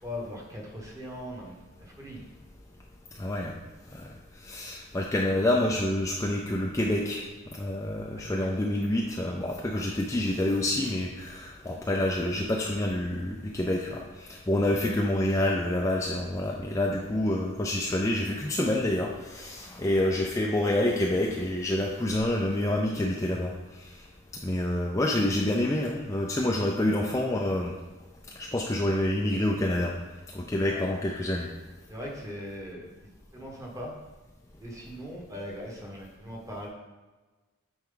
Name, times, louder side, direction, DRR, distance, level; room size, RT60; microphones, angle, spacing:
voice 1, 0.0-2.2 8.1-8.5 30.7-30.9 31.9-32.8 33.3-33.9 34.6-36.7, equal, 15° right, -1 dB, 1.2 m, -40 dB
voice 2, 3.2-3.5 3.9-4.1 4.4-7.2 7.6-23.5 24.4-27.7 28.4-29.9 30.3-31.5, left 1 dB, 15° left, -1 dB, 0.4 m, -27 dB
9.0 x 4.4 x 3.8 m, 1.3 s
head